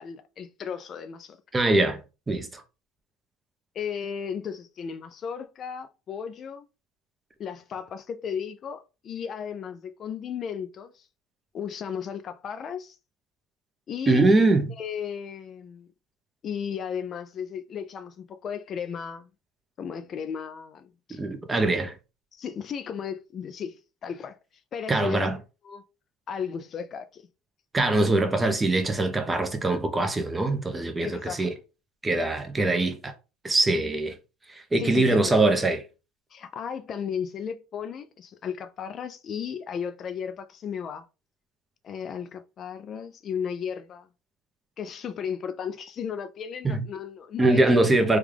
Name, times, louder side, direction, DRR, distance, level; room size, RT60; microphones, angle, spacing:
voice 1, 0.0-1.4 3.7-6.7 7.4-11.1 11.5-13.0 13.9-14.3 14.8-15.9 16.4-19.3 19.8-21.2 22.3-24.4 24.7-25.2 25.6-25.8 26.3-27.2 31.0-31.5 34.8-35.4 36.3-41.1 41.8-44.1 44.8-47.7, left 7 dB, 40° left, 0.3 m, -35 dB
voice 2, 1.5-2.0 2.3-2.6 14.1-14.6 21.2-21.9 24.9-25.4 27.7-31.5 32.0-33.1 33.4-34.2 34.5-35.8 46.6-46.8 47.4-48.2, right 2 dB, 15° right, 0.7 m, -22 dB
3.5 x 2.3 x 3.3 m
supercardioid pair, 120°, 0 cm